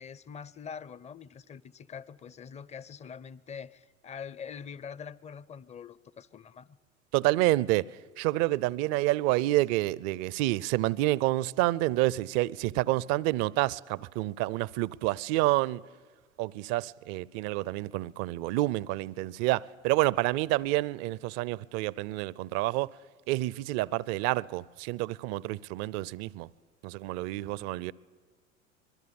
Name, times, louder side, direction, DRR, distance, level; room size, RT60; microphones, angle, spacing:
voice 1, 0.0-6.7, left 7 dB, 15° left, 0.6 m, -44 dB
voice 2, 7.1-7.9 8.2-15.8 16.4-22.9 23.3-26.5 26.8-27.9, right 17 dB, 40° right, 0.6 m, -28 dB
25.0 x 22.0 x 7.1 m
hypercardioid pair, 90°, 40 cm